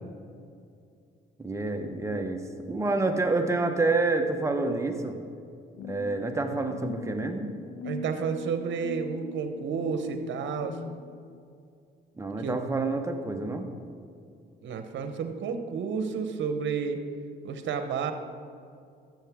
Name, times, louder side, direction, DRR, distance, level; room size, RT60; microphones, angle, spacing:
voice 1, 1.4-5.2 5.9-7.5 12.2-13.7, right 3 dB, 15° right, 4 dB, 1.0 m, -28 dB
sound 1, 5.8-11.4, left 4 dB, 80° left, 0.6 m, -42 dB
voice 2, 7.8-10.8 12.4-12.7 14.6-17.0 17.4-18.1, right 6 dB, 70° right, 8 dB, 1.0 m, -31 dB
13.0 x 7.6 x 3.6 m, 2.4 s
cardioid pair, 90°, 20 cm